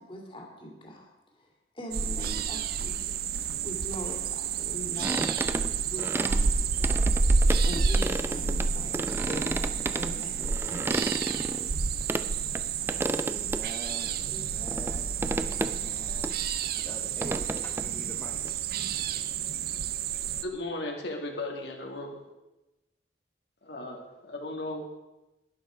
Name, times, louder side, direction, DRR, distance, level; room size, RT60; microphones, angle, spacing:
voice 1, 0.0-1.5 1.7-11.3, equal, 30° left, 0 dB, 2.5 m, -42 dB
sound 1, 1.9-20.4, right 5 dB, 60° right, 0.6 m, -29 dB
sound 2, 5.0-6.4 6.8-8.7 8.9-12.2 12.6-12.7 12.9-13.6 14.0-14.1 14.7-15.0 15.2-16.0 16.2-16.3 16.6-18.5, right 1 dB, 15° right, 0.5 m, -32 dB
voice 2, 13.2-16.4 16.7-18.6, equal, 10° left, 0 dB, 0.9 m, -45 dB
voice 3, 20.4-22.2 23.6-24.9, left 2 dB, 75° left, 1 dB, 2.0 m, -36 dB
12.0 x 11.0 x 5.0 m, 0.99 s
head